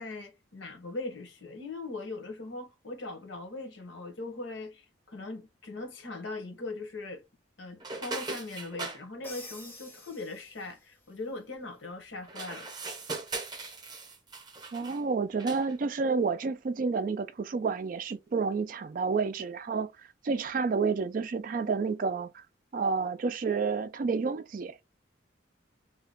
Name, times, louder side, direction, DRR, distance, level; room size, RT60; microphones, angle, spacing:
voice 1, 0.0-7.2 7.6-12.7, left 3 dB, 75° left, 1.0 m, -40 dB
sound 1, 7.8-9.0 12.2-15.0 15.4-15.7, right 3 dB, 20° right, 0.7 m, -39 dB
Crash cymbal, 9.2-10.9, left 2 dB, 10° left, 0.6 m, -47 dB
voice 2, 14.7-19.9 20.2-22.4 22.7-24.8, right 4 dB, 45° right, 0.3 m, -30 dB
2.8 x 2.2 x 3.6 m
head